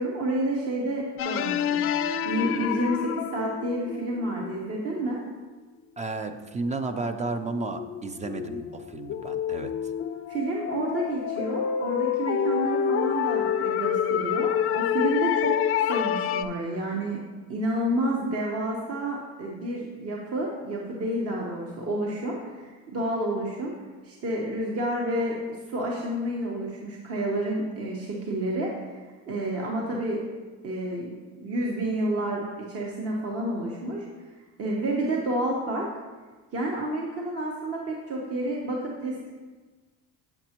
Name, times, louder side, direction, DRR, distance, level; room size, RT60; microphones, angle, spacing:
voice 1, 0.0-1.8 2.2-5.2 10.3-15.5 15.9-17.2 17.5-23.7 24.0-25.4 25.7-30.2 30.6-31.1 31.4-34.1 34.6-35.9 36.5-39.2, right 1 dB, 45° right, -2 dB, 1.1 m, -29 dB
sound 1, 1.2-4.7 6.4-6.5 7.1-16.5, left 9 dB, 40° left, 0.4 m, -28 dB
voice 2, 6.0-9.7, right 3 dB, 20° right, 8 dB, 0.4 m, -32 dB
7.9 x 7.0 x 2.9 m, 1.3 s
cardioid pair, 110°, 33 cm